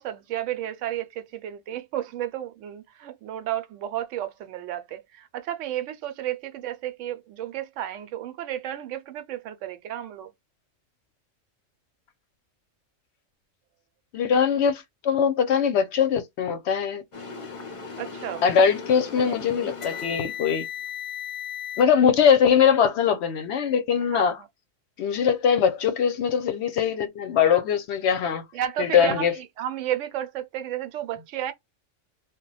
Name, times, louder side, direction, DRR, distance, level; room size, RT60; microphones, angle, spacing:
voice 1, 0.0-10.3 18.0-18.4 24.1-24.5 28.5-31.5, right 12 dB, 75° right, 0.9 m, -32 dB
voice 2, 14.1-17.0 18.4-20.7 21.8-24.4 25.0-28.4 28.8-29.3, left 7 dB, 65° left, 0.8 m, -21 dB
sound 1, 17.1-21.8, left 7 dB, 35° left, 0.5 m, -36 dB
2.3 x 2.1 x 3.9 m
omnidirectional pair, 1.3 m